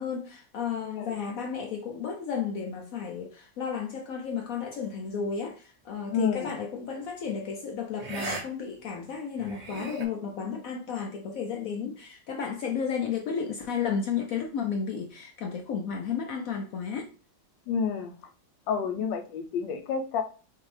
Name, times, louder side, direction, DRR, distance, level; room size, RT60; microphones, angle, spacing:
voice 1, 0.0-17.1, left 6 dB, 70° left, 0.8 m, -33 dB
voice 2, 6.1-6.5 17.7-18.1 18.7-20.2, left 6 dB, 85° left, 1.4 m, -29 dB
sound 1, 6.4-6.7 8.0-8.4 8.8-8.9 9.4-10.1, right 3 dB, 80° right, 0.3 m, -37 dB
5.5 x 2.9 x 3.2 m
omnidirectional pair, 1.9 m